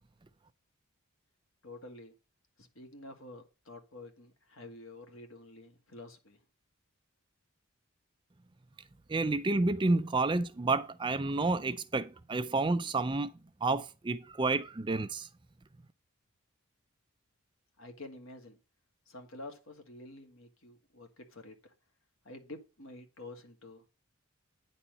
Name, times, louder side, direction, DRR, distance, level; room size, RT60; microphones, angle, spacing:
voice 1, 1.6-2.1 2.6-6.4 17.8-18.6 19.1-21.7 22.2-23.8, left 2 dB, 65° left, 2.1 m, -49 dB
voice 2, 9.1-13.3 13.6-15.3, right 3 dB, 20° right, 0.4 m, -30 dB
10.0 x 4.3 x 5.3 m
head